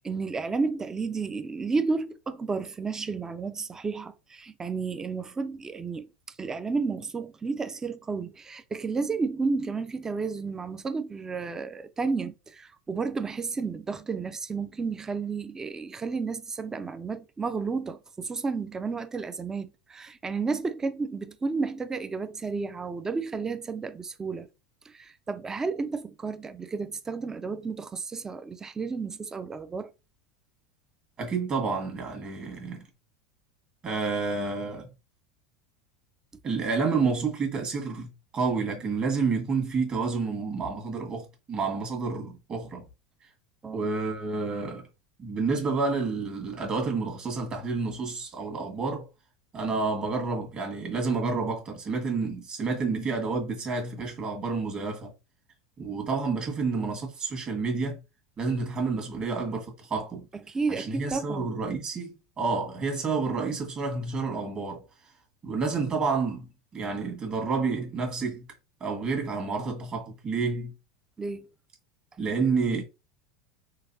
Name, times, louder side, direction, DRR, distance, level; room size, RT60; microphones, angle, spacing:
voice 1, 0.0-6.1 6.4-24.5 24.8-29.9 43.6-43.9 60.5-61.5 71.2-71.5, right 4 dB, 20° right, 0.5 m, -32 dB
voice 2, 31.2-32.8 33.8-34.9 36.4-42.8 43.7-44.9 45.2-49.1 49.5-55.1 55.8-58.0 58.4-60.2 60.7-64.8 65.4-66.5 66.7-68.4 68.8-70.7 72.2-72.8, right 4 dB, 35° right, 1.6 m, -29 dB
3.9 x 2.6 x 2.7 m
hypercardioid pair, 95°, 3 cm